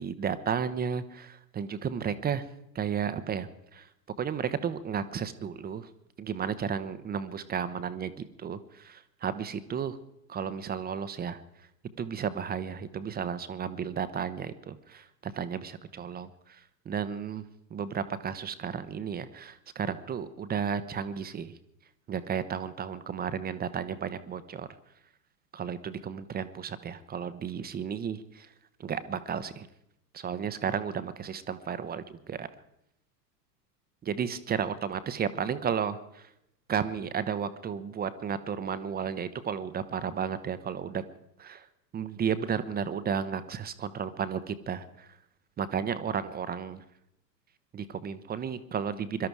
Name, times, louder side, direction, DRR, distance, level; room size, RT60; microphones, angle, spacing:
voice 1, 0.0-2.4 2.7-3.9 4.2-5.9 6.2-10.0 10.3-11.4 12.0-16.6 16.9-17.4 17.7-21.5 22.1-24.7 25.5-28.5 28.8-29.7 30.1-32.5 34.0-36.3 36.7-41.0 41.4-41.7 41.9-45.1 45.6-46.8 47.7-49.3, right 7 dB, 20° right, 13 dB, 0.9 m, -33 dB
22.5 x 12.5 x 4.7 m, 0.81 s
figure-of-eight pair, 90°, 50 cm